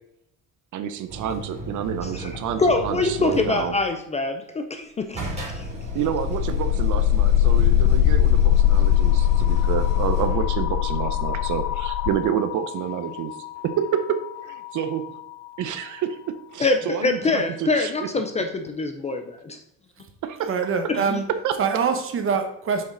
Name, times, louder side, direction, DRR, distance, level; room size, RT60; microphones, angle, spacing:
voice 1, 0.7-3.7 5.9-13.4 13.6-14.2 14.4-15.0 15.6-17.9 20.2-20.5 21.4-21.5, right 9 dB, 60° right, 9 dB, 0.7 m, -28 dB
sound 1, 1.1-3.8 5.1-10.7 13.6-13.7, right 2 dB, 20° right, 3.4 m, -35 dB
voice 2, 2.0-5.2 5.5-5.7 16.6-19.6 20.9-21.2, left 3 dB, 20° left, 6 dB, 0.4 m, -25 dB
sound 2, 5.5-15.5, left 12 dB, 80° left, 0.5 m, -22 dB
voice 3, 20.4-21.3 21.6-22.8, right 6 dB, 40° right, 6 dB, 1.1 m, -24 dB
7.6 x 6.5 x 3.8 m, 0.76 s
cardioid pair, 165°, 34 cm